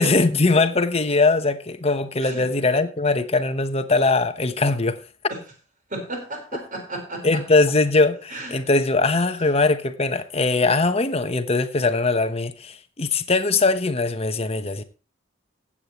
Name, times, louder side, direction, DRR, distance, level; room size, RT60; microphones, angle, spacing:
voice 1, 0.0-5.0 7.2-14.8, left 3 dB, 30° left, 1.0 m, -21 dB
voice 2, 5.9-7.4 8.3-8.5, right 1 dB, 40° right, 4.5 m, -33 dB
15.5 x 8.7 x 3.1 m
head